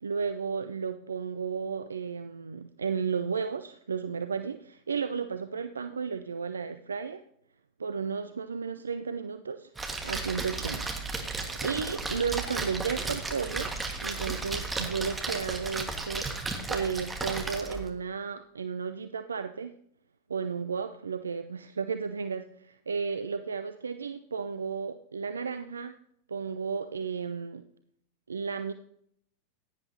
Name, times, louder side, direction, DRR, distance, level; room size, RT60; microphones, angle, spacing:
voice 1, 0.0-7.2 7.8-9.7 10.0-10.8 11.1-13.7 14.0-19.7 20.3-26.0 26.3-27.6 28.3-28.7, right 6 dB, 75° right, 10 dB, 0.4 m, -33 dB
Splash splatter, 9.7-17.9, right 3 dB, 10° right, 1.6 m, -34 dB
15.5 x 9.9 x 2.8 m, 0.70 s
figure-of-eight pair, 90°, 0 cm